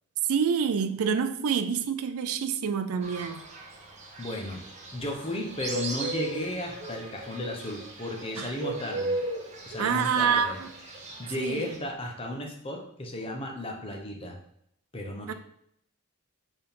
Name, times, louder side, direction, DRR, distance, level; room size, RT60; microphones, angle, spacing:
voice 1, 0.3-3.4 8.4-8.5 9.8-10.7 11.4-11.7 15.3-15.4, right 6 dB, 75° right, 0.4 m, -27 dB
Fowl, 3.0-11.8, right 2 dB, 30° right, 1.0 m, -37 dB
voice 2, 4.2-4.6 4.9-9.1 9.7-10.6 11.2-14.4 14.9-15.3, left 1 dB, 25° left, 0.9 m, -34 dB
4.6 x 3.9 x 5.2 m
head